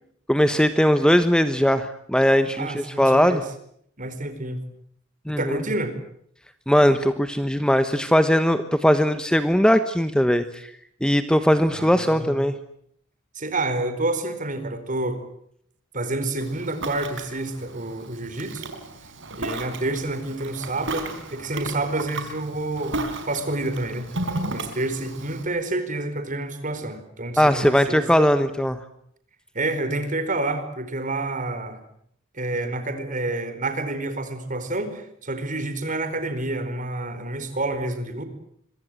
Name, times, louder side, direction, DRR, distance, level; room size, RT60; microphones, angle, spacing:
voice 1, 0.3-3.4 5.3-5.6 6.7-10.7 11.0-12.6 27.4-28.8, equal, 5° left, 10 dB, 1.1 m, -19 dB
voice 2, 2.5-3.4 4.0-4.7 5.4-5.9 11.7-12.4 13.3-15.2 15.9-18.6 19.4-28.3 29.5-31.8 32.3-38.2, right 2 dB, 40° right, 10 dB, 4.5 m, -29 dB
Ocean, 16.4-25.4, right 2 dB, 60° right, 4.8 m, -34 dB
26.0 x 23.5 x 7.8 m, 0.68 s
head